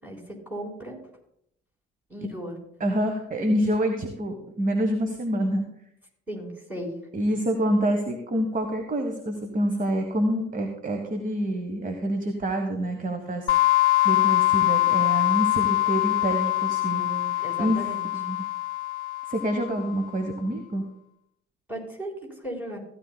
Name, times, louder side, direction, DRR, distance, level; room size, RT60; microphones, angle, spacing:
voice 1, 0.0-1.0 2.1-2.5 6.3-6.9 17.0-18.0 21.7-22.8, right 1 dB, 5° right, -2 dB, 3.7 m, -36 dB
voice 2, 2.8-5.6 7.1-13.5 14.0-17.0 17.3-17.8 18.1-18.4 19.3-20.8, right 1 dB, 25° right, 5 dB, 1.1 m, -27 dB
sound 1, 13.5-20.0, left 17 dB, 70° left, 0.6 m, -23 dB
15.5 x 9.9 x 2.2 m, 0.76 s
figure-of-eight pair, 50°, 35 cm